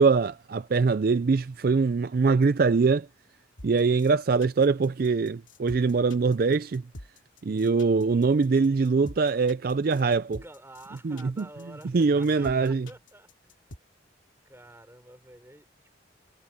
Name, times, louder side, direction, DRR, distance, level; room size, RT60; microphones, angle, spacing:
voice 1, 0.0-3.1 3.6-6.8 7.4-10.4 11.0-11.4 11.9-12.9, right 4 dB, 50° right, 0.4 m, -23 dB
sound 1, 3.6-13.8, left 1 dB, 85° left, 2.5 m, -46 dB
voice 2, 10.4-13.6 14.4-15.9, right 1 dB, 15° right, 3.6 m, -49 dB
head